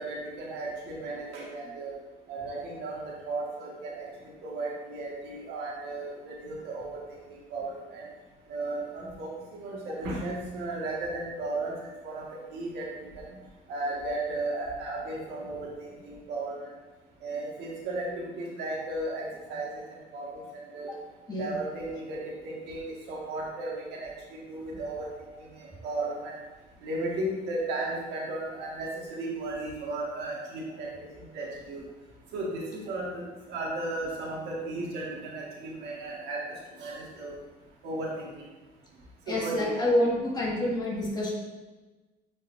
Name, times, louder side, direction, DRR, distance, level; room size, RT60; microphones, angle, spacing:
voice 1, 0.0-1.9 2.3-4.1 4.4-7.2 7.5-8.0 8.5-11.7 12.0-13.2 13.7-16.7 17.2-20.4 20.7-20.9 21.4-25.1 25.4-26.4 26.8-30.9 31.2-31.8 32.3-36.4 36.8-37.3 37.8-38.3 39.3-39.8, right 2 dB, 85° right, -3 dB, 1.8 m, -35 dB
voice 2, 39.3-41.3, left 1 dB, 25° left, -5 dB, 1.8 m, -27 dB
8.8 x 4.5 x 2.6 m, 1.2 s
cardioid pair, 110°, 17 cm